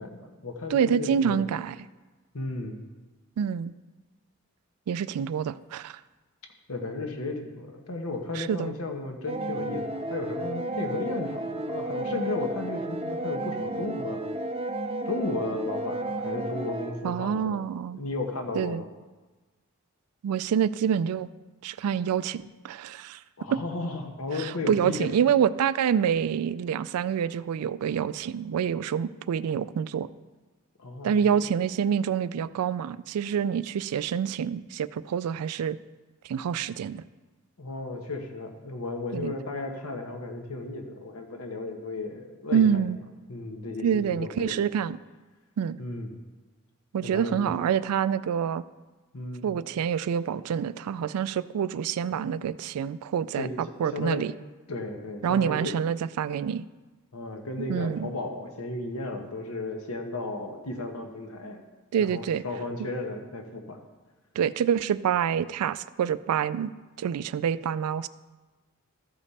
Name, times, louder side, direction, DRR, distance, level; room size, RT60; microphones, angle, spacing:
voice 1, 0.0-1.4 2.3-2.8 6.7-14.2 15.0-17.7 17.9-18.9 23.4-25.1 30.8-31.4 37.6-42.8 43.3-44.7 45.8-46.2 47.0-47.5 49.1-49.5 53.4-53.5 53.9-54.3 54.7-55.8 57.1-61.6 62.0-63.8, left 2 dB, 80° left, 4 dB, 1.1 m, -34 dB
voice 2, 0.7-1.8 3.4-3.7 4.9-6.0 8.4-8.7 17.0-18.0 18.6-18.8 20.2-21.3 21.6-23.2 23.5-23.6 24.4-30.1 31.0-35.8 36.3-37.0 39.1-39.3 42.5-43.0 43.8-45.0 45.6-45.8 46.9-48.6 49.4-54.3 55.2-56.7 57.6-58.1 61.9-62.4 64.4-66.7 67.0-68.1, right 8 dB, 85° right, 17 dB, 0.3 m, -27 dB
sound 1, 9.3-16.9, right 1 dB, 25° right, 0.5 m, -32 dB
13.5 x 5.2 x 4.1 m, 1.2 s
head